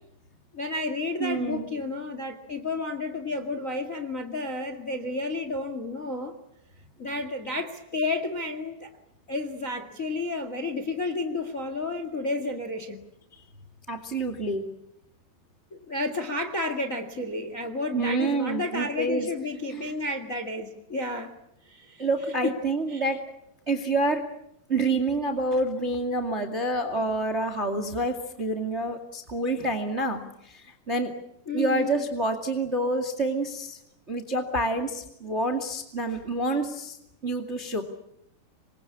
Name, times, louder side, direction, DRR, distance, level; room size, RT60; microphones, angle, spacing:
voice 1, 0.5-6.3 7.0-8.9 9.3-13.1 15.7-21.3 21.6-22.0 22.4-22.5 22.9-23.0 31.5-32.0, left 2 dB, 30° left, 8 dB, 1.6 m, -31 dB
voice 2, 1.2-1.7 13.9-14.6 17.9-19.3 19.7-19.9 22.0-23.2 23.7-24.2 24.7-31.1 31.5-33.8 34.1-37.0 37.2-37.8, right 2 dB, 25° right, 7 dB, 1.6 m, -28 dB
27.5 x 23.5 x 8.6 m, 0.79 s
omnidirectional pair, 4.8 m